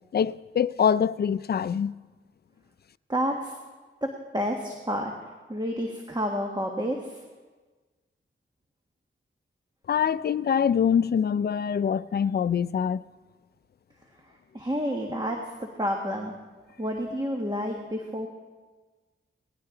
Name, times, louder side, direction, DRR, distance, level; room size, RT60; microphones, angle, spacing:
voice 1, 0.1-1.9 9.9-13.0, left 7 dB, 50° left, 0.4 m, -24 dB
voice 2, 3.1-3.5 4.3-5.1 5.5-7.2 14.5-16.3 16.8-18.3, equal, 20° right, 1.6 m, -29 dB
19.0 x 16.0 x 3.9 m
wide cardioid pair, 75°, 21 cm